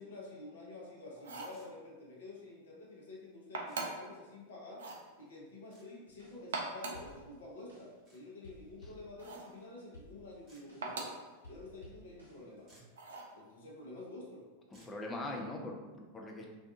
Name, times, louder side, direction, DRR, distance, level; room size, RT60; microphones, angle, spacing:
voice 1, 0.0-4.9 5.1-11.2 11.5-12.7 13.3-14.5, left 2 dB, 60° left, -3 dB, 0.7 m, -49 dB
sound 1, 1.2-1.6 3.5-4.1 4.7-5.1 6.4-7.1 9.2-9.6 10.8-11.3 13.0-13.4, right 3 dB, 65° right, 0.3 m, -41 dB
sound 2, 1.5-1.7 3.7-3.8 5.7-5.9 8.0-8.2 10.5-10.6 12.3-12.4 12.6-13.0 14.7-15.0, right 1 dB, 30° right, 0.9 m, -62 dB
sound 3, 6.1-6.6 6.9-8.1 8.4-11.1 11.4-12.8, equal, 85° right, 0.8 m, -57 dB
voice 2, 14.7-16.5, left 2 dB, 15° left, 0 dB, 0.4 m, -41 dB
2.5 x 2.3 x 2.5 m, 1.3 s
figure-of-eight pair, 90°, 0 cm